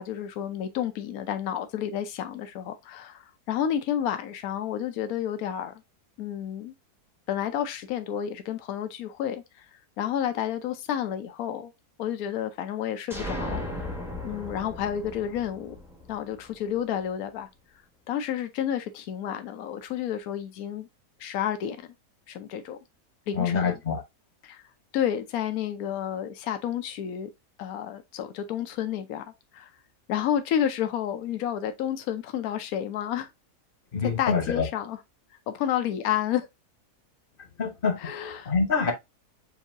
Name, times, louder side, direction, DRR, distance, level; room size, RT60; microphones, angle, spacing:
voice 1, 0.0-5.7 6.2-6.7 7.3-9.7 10.0-11.7 12.0-13.9 14.2-15.8 16.1-17.5 18.1-20.9 21.2-21.8 22.3-22.8 23.3-23.8 24.4-24.6 24.9-27.3 27.6-29.2 29.5-29.7 30.1-33.3 34.0-35.0 35.5-36.5 38.0-38.5, left 10 dB, 70° left, 1.1 m, -30 dB
sound 1, 13.1-16.8, left 1 dB, ahead, 0.8 m, -36 dB
voice 2, 23.3-24.0 33.9-34.7 37.6-38.0 38.5-38.9, left 5 dB, 40° left, 1.1 m, -25 dB
7.2 x 2.8 x 2.6 m
omnidirectional pair, 1.7 m